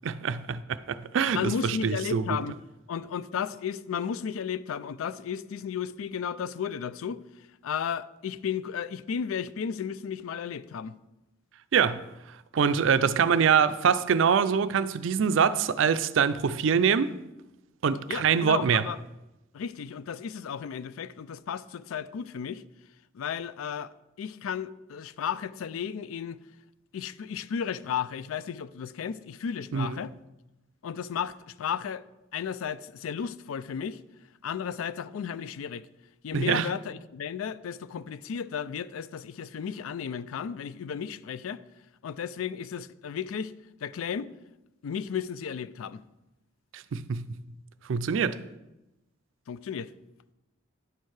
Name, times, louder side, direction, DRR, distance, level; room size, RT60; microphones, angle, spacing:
voice 1, 0.0-0.6 0.9-2.3 11.7-12.1 12.5-17.1 17.8-18.9 29.7-29.9 36.3-36.7 46.7-47.4 47.9-48.4, right 6 dB, 65° right, 0.4 m, -24 dB
voice 2, 1.3-2.6 2.9-7.2 7.6-10.9 18.1-19.0 19.5-22.6 23.1-23.9 24.2-26.4 26.9-30.1 30.8-32.0 32.3-34.0 34.4-35.9 36.2-41.6 42.0-43.5 43.8-44.3 44.8-46.0 49.5-49.9, left 7 dB, 80° left, 0.4 m, -34 dB
10.5 x 4.5 x 4.7 m
head